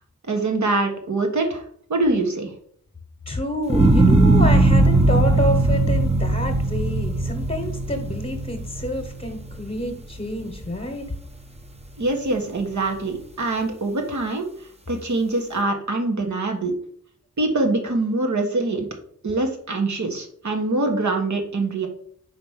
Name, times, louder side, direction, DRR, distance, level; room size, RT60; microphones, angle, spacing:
voice 1, 0.3-1.6 1.9-2.5 12.0-14.5 14.9-16.8 17.4-18.9 19.2-21.9, right 2 dB, 70° right, 4 dB, 1.4 m, -24 dB
voice 2, 3.3-11.1, left 1 dB, 25° left, 3 dB, 1.1 m, -28 dB
sound 1, 3.7-10.0 10.5-11.0, right 2 dB, 20° right, 0.9 m, -19 dB
5.0 x 4.6 x 5.6 m, 0.63 s
wide cardioid pair, 95°, 30 cm